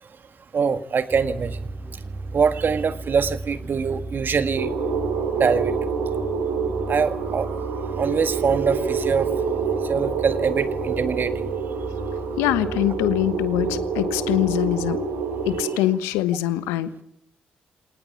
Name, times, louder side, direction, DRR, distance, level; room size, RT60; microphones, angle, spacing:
voice 1, 0.5-1.7 2.3-4.7 5.3-5.8 6.9-7.5 8.0-9.3 9.8-11.3, right 6 dB, 50° right, 11 dB, 1.8 m, -23 dB
sound 1, 1.1-15.6, right 2 dB, 30° right, 2.5 m, -36 dB
sound 2, 4.6-15.8, right 5 dB, 80° right, 5.1 m, -27 dB
voice 2, 12.4-15.0 15.5-17.0, left 14 dB, 80° left, 14 dB, 1.2 m, -23 dB
26.0 x 19.0 x 8.6 m, 0.75 s
hypercardioid pair, 45°, 4 cm